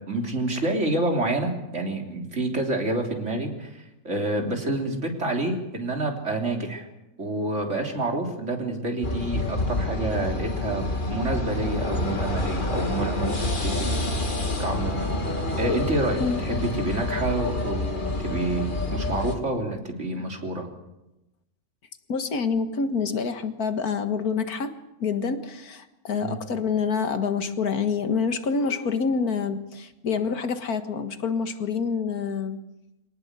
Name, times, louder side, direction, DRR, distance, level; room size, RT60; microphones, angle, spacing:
voice 1, 0.1-6.9 7.2-10.8 11.1-14.0 14.6-15.1 15.6-20.7 26.2-26.4, right 2 dB, 50° right, 2 dB, 3.7 m, -28 dB
sound 1, 9.0-19.3, left 2 dB, 35° left, 2.3 m, -28 dB
voice 2, 22.1-24.7 25.0-32.6, left 5 dB, 85° left, 9 dB, 2.1 m, -27 dB
24.0 x 18.5 x 8.2 m, 0.92 s
omnidirectional pair, 1.6 m